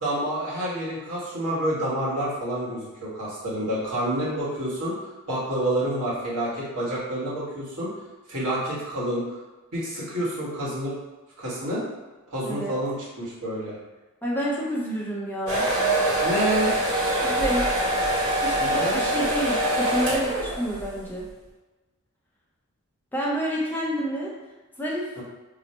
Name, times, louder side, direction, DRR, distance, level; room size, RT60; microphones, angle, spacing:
voice 1, 0.0-7.9 8.3-9.4 9.7-10.9 11.4-11.8 12.3-13.8 16.2-16.7 18.6-19.0 25.2-25.3, right 1 dB, 80° right, -7 dB, 1.3 m, -28 dB
voice 2, 14.2-15.6 17.2-17.9 18.4-21.3 23.1-24.3 24.8-25.0, equal, 10° left, -5 dB, 0.5 m, -28 dB
sound 1, 15.5-21.0, right 1 dB, 60° right, 1.2 m, -24 dB
3.1 x 2.0 x 4.1 m, 1.2 s
head